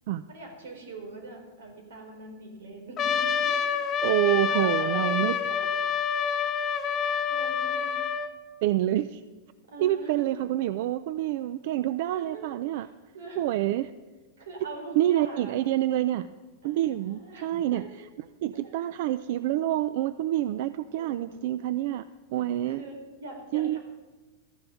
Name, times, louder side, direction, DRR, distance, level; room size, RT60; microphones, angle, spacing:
voice 1, 0.3-3.3 4.0-5.6 7.3-8.0 9.7-10.1 12.1-12.9 13.1-13.4 14.4-15.5 16.6-17.8 18.6-18.9 21.0-21.4 22.7-23.8, right 2 dB, 90° right, 2 dB, 3.7 m, -43 dB
Trumpet, 3.0-8.3, left 7 dB, 25° left, 0.8 m, -27 dB
voice 2, 4.0-5.3 8.6-9.2 9.8-12.9 13.4-13.9 15.0-16.3 16.6-17.8 18.4-22.0 22.3-22.8 23.5-23.8, right 13 dB, 55° right, 14 dB, 0.4 m, -27 dB
13.0 x 6.9 x 7.0 m, 1.2 s
supercardioid pair, 150°, 0 cm